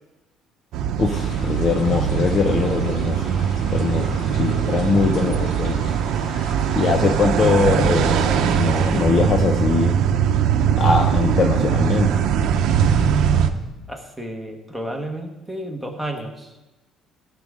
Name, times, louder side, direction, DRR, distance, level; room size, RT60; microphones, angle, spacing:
sound 1, 0.7-13.5, right 8 dB, 65° right, 0.8 m, -21 dB
voice 1, 1.0-3.2 3.7-5.8 6.8-9.9 10.8-12.1, left 4 dB, 35° left, 4 dB, 0.7 m, -21 dB
sound 2, 1.1-9.0, left 1 dB, 65° left, 3.8 m, -41 dB
voice 2, 13.9-16.5, right 1 dB, ahead, 3 dB, 1.3 m, -31 dB
16.0 x 6.8 x 3.7 m, 1.0 s
cardioid pair, 150°, 0 cm